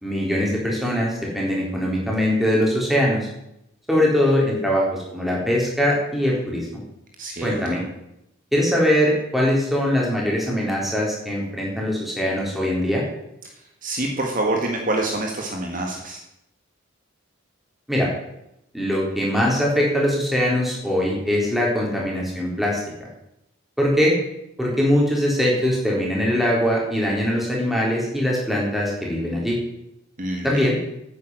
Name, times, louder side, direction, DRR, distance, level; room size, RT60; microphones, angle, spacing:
voice 1, 0.0-3.3 3.9-6.8 7.4-7.8 8.5-13.0 17.9-18.1 18.7-23.1 23.8-24.1 24.6-29.6 30.4-30.8, equal, ahead, -3 dB, 3.8 m, -22 dB
voice 2, 7.2-7.8 13.8-16.2 30.2-30.6, right 2 dB, 40° right, 1 dB, 1.7 m, -26 dB
9.5 x 9.5 x 7.9 m, 0.83 s
head